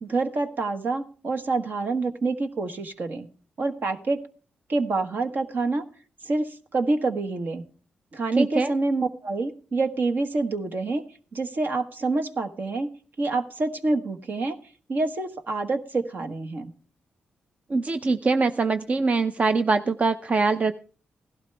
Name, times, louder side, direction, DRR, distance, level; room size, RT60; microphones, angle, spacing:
voice 1, 0.0-3.3 3.6-4.2 4.7-5.8 6.2-7.6 8.1-11.0 11.3-12.9 13.2-14.6 14.9-16.7, right 3 dB, 60° right, 7 dB, 1.4 m, -27 dB
voice 2, 8.4-8.7 17.7-20.8, right 3 dB, 40° right, 9 dB, 0.6 m, -23 dB
16.5 x 12.0 x 3.4 m, 0.40 s
cardioid pair, 70°, 4 cm